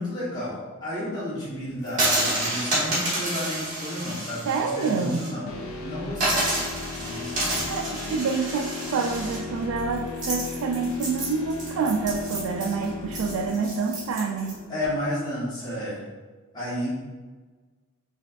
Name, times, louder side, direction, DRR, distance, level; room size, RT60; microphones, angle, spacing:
voice 1, 0.0-6.6 6.9-8.6 14.7-16.0 16.5-17.0, left 1 dB, 20° left, -9 dB, 1.1 m, -32 dB
sound 1, 1.9-5.3 5.6-5.7 6.1-14.5, right 1 dB, 35° right, 1.5 m, -29 dB
voice 2, 4.4-5.2 7.7-14.6, right 5 dB, 75° right, 2 dB, 0.3 m, -27 dB
sound 2, 5.5-15.4, left 4 dB, 80° left, 0.6 m, -37 dB
5.2 x 2.4 x 2.4 m, 1.3 s
head